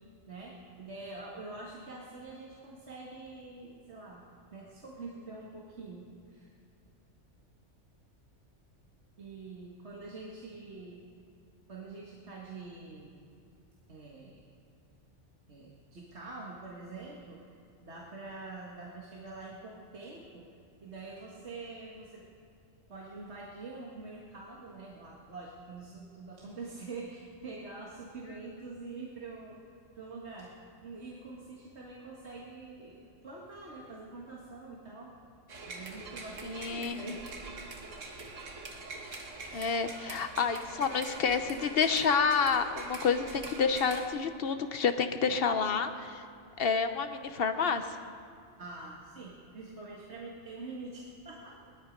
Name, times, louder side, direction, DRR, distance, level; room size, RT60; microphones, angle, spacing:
voice 1, 0.3-4.2 4.5-6.5 9.2-11.0 11.7-13.3 13.9-14.4 15.5-20.5 20.8-22.2 22.9-29.6 30.0-30.5 30.8-35.1 35.7-37.2 37.9-38.0 39.5-39.7 48.6-51.7, right 3 dB, 65° right, -4 dB, 1.9 m, -45 dB
sound 1, 35.5-44.1, right 3 dB, 90° right, 1.8 m, -44 dB
voice 2, 36.4-37.0 39.5-46.2 46.6-47.8, left 5 dB, 55° left, 8 dB, 1.0 m, -29 dB
19.5 x 13.0 x 5.2 m, 2.6 s
omnidirectional pair, 1.3 m